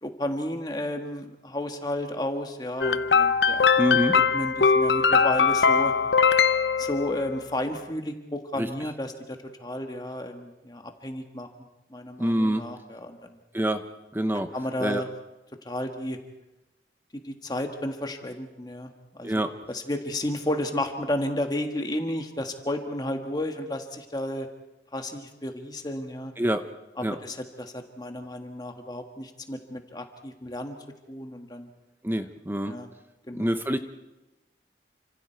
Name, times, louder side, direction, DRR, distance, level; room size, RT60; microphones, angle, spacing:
voice 1, 0.0-5.9 6.8-11.5 11.9-13.4 14.5-15.1 15.6-16.2 17.1-19.3 19.7-24.5 24.9-26.3 27.0-30.8 31.1-31.7 32.7-32.9 33.3-33.6, left 1 dB, 20° left, 5 dB, 1.6 m, -32 dB
sound 1, 2.8-7.4, left 5 dB, 75° left, 0.7 m, -21 dB
voice 2, 3.8-4.2 8.6-8.7 12.2-12.7 13.5-13.8 14.1-14.5 14.8-15.0 19.2-19.5 26.4-26.6 27.0-27.2 32.0-32.8 33.3-33.8, right 1 dB, 10° right, 8 dB, 0.8 m, -26 dB
29.5 x 26.0 x 4.6 m, 0.99 s
head